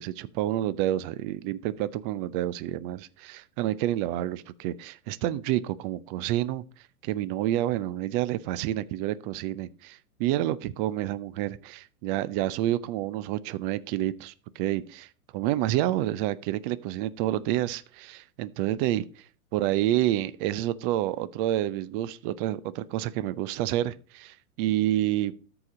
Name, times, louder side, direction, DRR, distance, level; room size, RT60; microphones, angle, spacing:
voice 1, 0.0-6.6 7.0-19.0 19.5-25.3, right 14 dB, 35° right, 0.6 m, -29 dB
13.5 x 5.0 x 3.8 m
hypercardioid pair, 115°, 45 cm